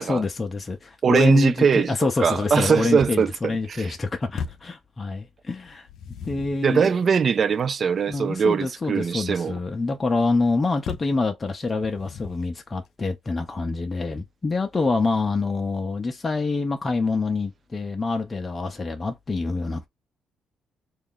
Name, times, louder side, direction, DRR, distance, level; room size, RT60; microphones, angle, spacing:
voice 1, 0.0-5.9 6.3-6.9 8.1-19.9, left 3 dB, 30° left, 0.6 m, -26 dB
voice 2, 1.0-3.9 6.6-9.6, right 6 dB, 50° right, 0.3 m, -22 dB
sound 1, 4.4-4.8 5.7-6.7 10.9-11.2 11.8-12.6, left 7 dB, 75° left, 0.4 m, -36 dB
3.1 x 2.4 x 3.7 m
cardioid pair, 90°, 0 cm